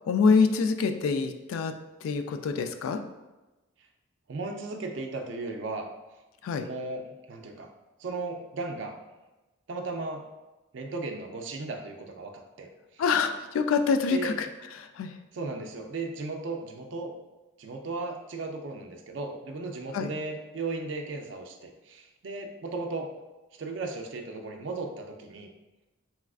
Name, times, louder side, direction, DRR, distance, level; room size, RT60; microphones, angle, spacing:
voice 1, 0.1-1.7 2.0-3.0 6.4-6.7 13.0-14.5 15.0-15.1 19.9-20.1, left 5 dB, 85° left, 8 dB, 0.3 m, -25 dB
voice 2, 4.3-5.9 6.6-7.7 8.0-9.0 9.7-10.3 10.7-13.0 14.1-14.4 15.3-17.1 17.6-23.1 23.6-25.5, right 3 dB, 60° right, 3 dB, 0.4 m, -36 dB
4.2 x 2.4 x 2.3 m, 1.1 s
head